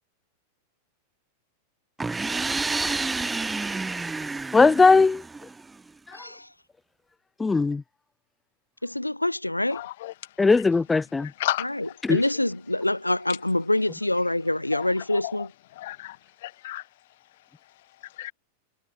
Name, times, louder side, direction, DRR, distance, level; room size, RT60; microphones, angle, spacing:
sound 1, 2.0-5.7, right 3 dB, 10° right, 7.3 m, -29 dB
voice 1, 4.5-5.2 7.4-7.8 10.4-11.3 12.0-12.2, left 4 dB, 10° left, 1.9 m, -18 dB
voice 2, 6.1-6.5 8.8-9.8 11.6-15.5, left 1 dB, 85° left, 4.5 m, -26 dB
voice 3, 9.7-10.1 11.2-11.7 14.7-14.8 15.8-16.2 16.4-16.8 18.2-18.3, left 15 dB, 55° left, 5.1 m, -31 dB
figure-of-eight pair, 90°, 0 cm